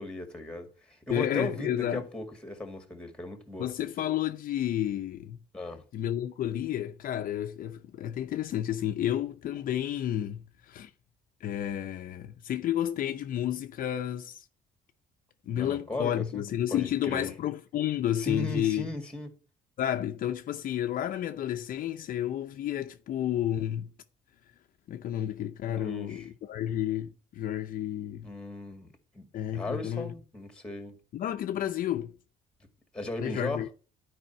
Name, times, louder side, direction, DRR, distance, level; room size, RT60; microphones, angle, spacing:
voice 1, 0.0-3.7 5.5-5.8 15.5-16.4 16.7-17.3 18.2-19.3 25.7-26.3 28.2-31.0 32.9-33.6, left 2 dB, 5° left, 2.1 m, -37 dB
voice 2, 1.1-2.1 3.6-5.4 5.9-10.9 11.4-14.4 15.5-18.9 19.8-23.9 24.9-28.3 29.3-30.1 31.1-32.1 33.2-33.7, left 11 dB, 55° left, 0.6 m, -31 dB
11.5 x 5.0 x 4.5 m
cardioid pair, 110°, 17 cm